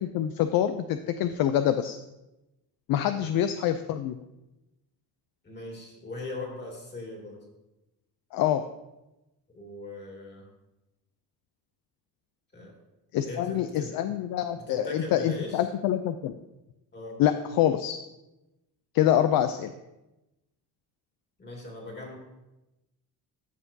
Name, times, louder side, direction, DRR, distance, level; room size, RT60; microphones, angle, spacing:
voice 1, 0.0-2.0 2.9-4.2 8.3-8.6 13.1-16.3 17.2-18.0 18.9-19.7, left 11 dB, 60° left, 9 dB, 0.5 m, -26 dB
voice 2, 5.4-7.4 9.5-10.5 12.5-12.7 13.2-13.9 14.6-15.7 16.9-17.2 21.4-22.1, left 2 dB, 25° left, -1 dB, 2.4 m, -40 dB
12.5 x 5.8 x 2.7 m, 0.98 s
cardioid pair, 110°, 40 cm